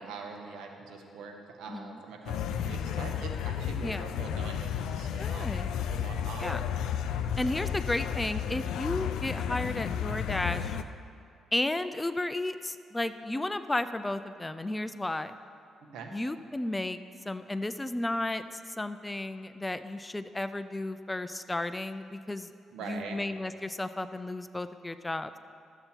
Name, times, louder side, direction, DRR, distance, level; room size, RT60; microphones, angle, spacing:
voice 1, 0.0-5.5 5.8-6.6 15.9-16.1 22.7-23.2, right 5 dB, 85° right, 3 dB, 1.2 m, -43 dB
voice 2, 1.7-2.0 3.8-4.0 5.2-5.7 6.4-6.6 7.4-10.8 11.5-15.4 16.1-17.0 17.2-22.5 22.8-25.3, left 2 dB, 15° left, 12 dB, 0.4 m, -33 dB
sound 1, 2.3-10.8, left 8 dB, 85° left, 0.4 m, -32 dB
13.0 x 7.9 x 4.4 m, 2.5 s
cardioid pair, 90°, 0 cm